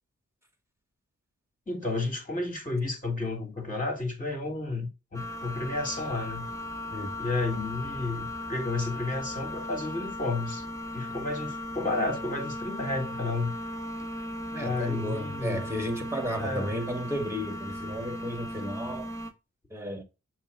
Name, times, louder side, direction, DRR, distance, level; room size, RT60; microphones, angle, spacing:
voice 1, 1.7-6.5 7.2-10.6 10.9-13.5 14.6-15.7 16.4-16.7, left 2 dB, 30° left, 2.9 m, -31 dB
sound 1, 5.1-19.3, left 1 dB, 10° left, 1.2 m, -37 dB
voice 2, 14.5-19.1 19.7-20.0, equal, 10° right, 1.8 m, -33 dB
7.0 x 2.4 x 5.4 m
cardioid pair, 60°, 30 cm